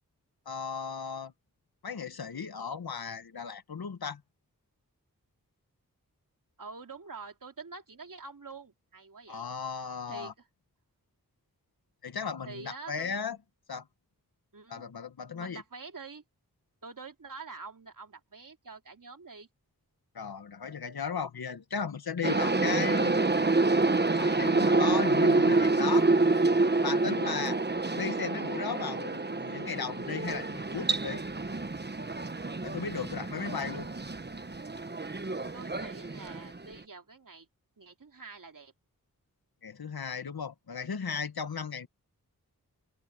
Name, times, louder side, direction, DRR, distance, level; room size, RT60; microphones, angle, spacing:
voice 1, 0.4-1.3 1.8-4.2 9.3-10.3 12.0-13.4 13.7-13.9 14.7-15.6 20.1-23.2 24.1-26.1 26.8-27.6 28.0-31.2 32.6-33.9 39.6-41.9, left 6 dB, 85° left, 1.5 m, -36 dB
voice 2, 6.6-9.5 10.1-10.3 12.4-13.2 14.5-14.8 15.3-16.2 16.8-19.5 33.4-34.0 35.5-37.5 37.8-38.7, right 4 dB, 60° right, 2.8 m, -46 dB
sound 1, 22.2-36.8, right 3 dB, 30° right, 1.2 m, -27 dB
open air
cardioid pair, 45°, 36 cm